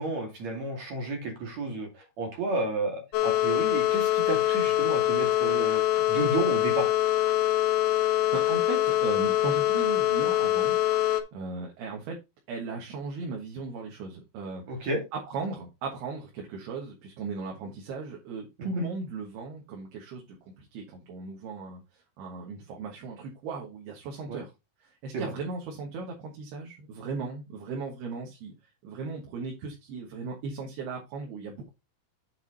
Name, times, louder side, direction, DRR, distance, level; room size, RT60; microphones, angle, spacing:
voice 1, 0.0-5.8 6.1-6.9 14.7-15.0 18.6-18.7 24.3-24.4 25.1-25.3, right 2 dB, 50° right, 1 dB, 3.2 m, -32 dB
sound 1, 3.1-11.2, left 14 dB, 75° left, 2.8 m, -24 dB
voice 2, 8.0-10.8 11.3-12.2 12.5-14.6 15.1-21.8 22.2-24.5 24.8-28.5 28.8-31.7, right 4 dB, 80° right, 0 dB, 3.5 m, -37 dB
8.1 x 4.9 x 4.0 m, 0.23 s
omnidirectional pair, 4.6 m